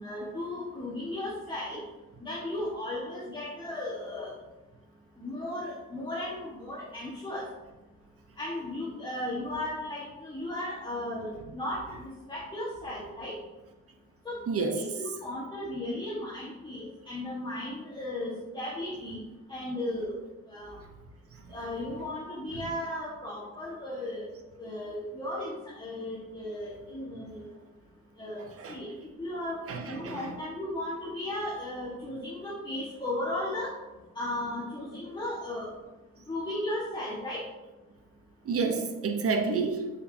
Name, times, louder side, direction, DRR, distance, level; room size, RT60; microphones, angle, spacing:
voice 1, 0.0-1.8 2.2-4.3 5.2-7.5 8.4-13.4 14.2-19.2 19.5-20.2 20.5-20.8 21.5-24.3 24.6-27.5 28.2-28.9 29.2-33.7 34.1-35.7 36.3-37.4, left 1 dB, 15° left, -7 dB, 1.6 m, -35 dB
voice 2, 14.5-14.8 28.6-28.8 29.7-30.3 38.4-39.9, right 4 dB, 50° right, 5 dB, 0.9 m, -29 dB
6.4 x 5.5 x 2.8 m, 1.1 s
cardioid pair, 90°, 30 cm